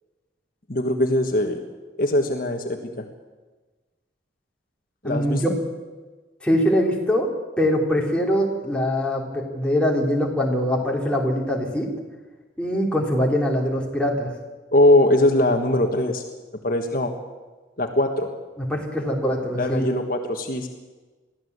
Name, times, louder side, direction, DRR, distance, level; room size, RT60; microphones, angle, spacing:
voice 1, 0.7-1.6 2.0-3.0 5.0-5.4 14.7-16.2 16.6-17.1 17.8-18.3 19.5-20.7, left 1 dB, 50° left, 4 dB, 1.5 m, -21 dB
voice 2, 5.0-5.5 6.4-11.9 12.6-14.3 18.6-19.9, equal, 5° left, -2 dB, 3.3 m, -23 dB
22.5 x 14.5 x 8.1 m, 1.3 s
head